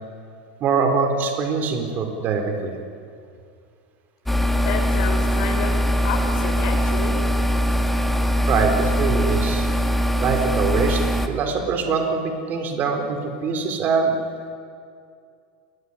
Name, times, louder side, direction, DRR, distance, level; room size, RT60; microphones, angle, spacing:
voice 1, 0.6-2.7 8.5-9.7 10.2-12.2 12.5-14.2, right 5 dB, 40° right, 5 dB, 4.1 m, -23 dB
sound 1, 4.3-11.3, equal, 5° left, 2.1 m, -21 dB
voice 2, 4.6-5.8 6.0-7.1, left 6 dB, 60° left, 3 dB, 5.9 m, -30 dB
29.0 x 20.5 x 9.8 m, 2.3 s
supercardioid pair, 135°, 5 cm